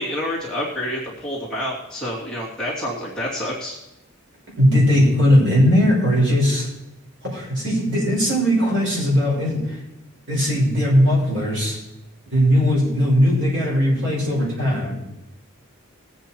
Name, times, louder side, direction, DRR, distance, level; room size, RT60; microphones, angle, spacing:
voice 1, 0.0-3.8, left 1 dB, 5° left, -7 dB, 2.7 m, -28 dB
voice 2, 4.6-6.7 7.2-9.8 10.3-11.8 12.3-15.0, equal, 55° right, -4 dB, 5.8 m, -18 dB
20.5 x 8.3 x 4.5 m, 0.94 s
head